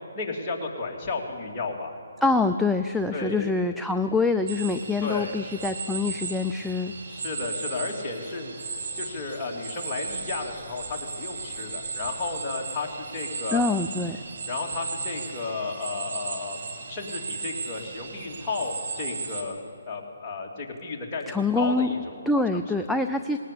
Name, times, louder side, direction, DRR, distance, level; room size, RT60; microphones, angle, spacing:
voice 1, 0.1-1.9 3.1-3.5 5.0-5.3 7.1-8.6 9.0-13.6 14.5-16.6 16.9-19.6 19.9-22.9, left 3 dB, 20° left, -3 dB, 3.2 m, -33 dB
voice 2, 2.2-6.9 13.5-14.2 21.3-21.9 22.3-23.4, left 3 dB, ahead, 5 dB, 0.5 m, -25 dB
sound 1, 4.5-19.4, right 4 dB, 55° right, 3.0 m, -36 dB
20.0 x 18.5 x 8.7 m, 2.8 s
hypercardioid pair, 155°, 0 cm